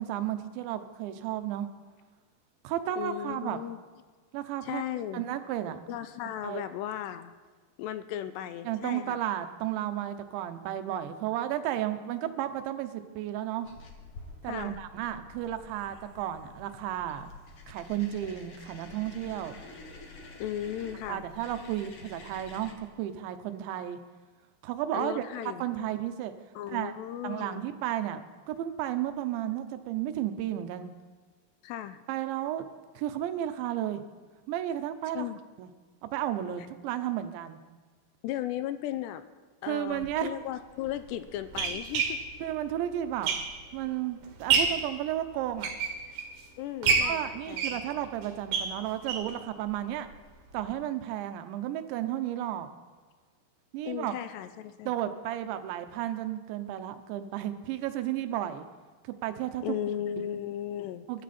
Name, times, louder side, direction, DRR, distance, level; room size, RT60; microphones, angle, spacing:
voice 1, 0.0-1.7 2.6-3.6 4.3-4.8 5.1-5.8 6.4-6.6 8.6-13.7 14.4-17.3 17.7-19.6 21.1-24.0 24.6-25.2 25.6-26.3 26.7-26.9 27.2-30.9 32.1-32.7 33.0-34.0 34.5-35.2 35.6-35.7 36.0-37.6 39.7-40.3 42.4-43.4 43.7-45.7 47.0-50.1 50.5-52.7 53.7-54.2 54.9-58.7 59.0-59.8 61.1-61.2, right 12 dB, 90° right, 9 dB, 3.2 m, -33 dB
voice 2, 3.0-3.8 4.6-5.2 5.9-7.3 7.8-9.2 14.4-14.8 20.4-21.2 24.9-25.6 26.6-27.6 31.6-32.0 35.1-35.4 38.2-39.2 39.6-42.2 46.6-47.8 53.9-54.9 59.6-61.1, left 11 dB, 80° left, 11 dB, 2.7 m, -36 dB
sound 1, 13.6-22.7, left 3 dB, 50° left, 1.7 m, -49 dB
sound 2, 39.9-40.1 40.9-43.8 44.2-44.9 45.4-46.4 46.8-49.4 49.7-49.8 50.1-50.2 50.6-50.7, right 5 dB, 65° right, 3.2 m, -29 dB
24.0 x 12.0 x 4.3 m, 1.4 s
omnidirectional pair, 5.1 m